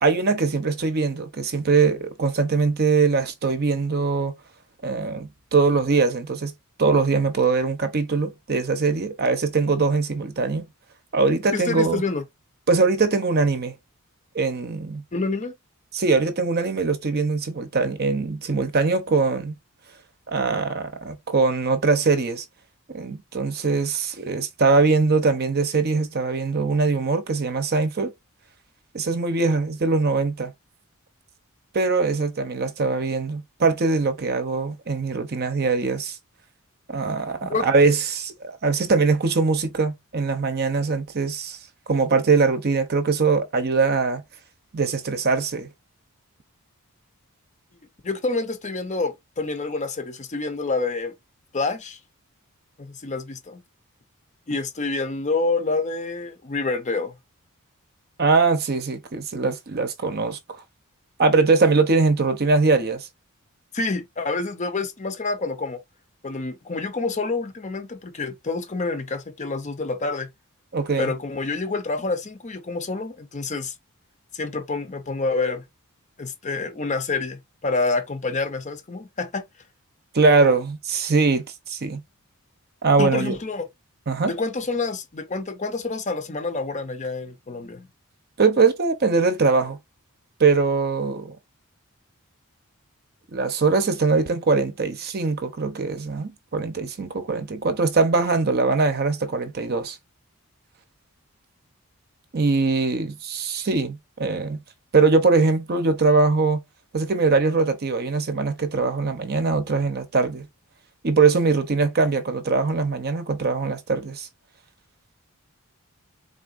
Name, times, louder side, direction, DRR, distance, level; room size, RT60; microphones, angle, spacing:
voice 1, 0.0-4.3 4.8-6.5 6.8-10.7 11.1-12.0 12.7-13.7 14.3-15.0 15.9-19.5 20.3-22.4 22.9-28.1 28.9-30.5 31.7-36.2 36.9-41.6 41.9-44.2 44.7-45.7 58.2-60.4 61.2-63.1 70.7-71.1 80.1-82.0 82.8-83.4 84.1-84.3 88.4-89.8 90.4-91.4 93.3-100.0 102.3-104.6 104.9-106.6 106.9-110.5 111.0-114.3, right 4 dB, 45° right, 0.7 m, -22 dB
voice 2, 11.5-12.2 15.1-15.5 37.5-37.7 48.0-51.1 51.5-52.0 52.8-53.6 54.5-57.1 63.7-65.8 66.2-70.3 71.0-73.7 74.3-75.6 76.2-79.5 83.0-83.7 84.2-87.9, left 3 dB, 35° left, 0.7 m, -27 dB
3.9 x 3.5 x 2.5 m
head